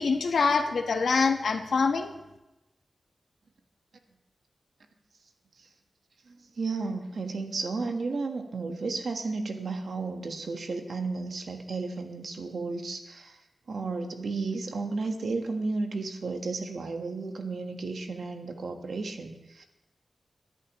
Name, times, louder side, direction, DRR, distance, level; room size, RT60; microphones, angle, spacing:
voice 1, 0.0-2.1, left 4 dB, 80° left, 5 dB, 1.1 m, -25 dB
voice 2, 6.3-13.3 13.7-19.6, right 3 dB, 70° right, 5 dB, 1.3 m, -33 dB
22.0 x 11.0 x 3.1 m, 0.98 s
wide cardioid pair, 145°, 0 cm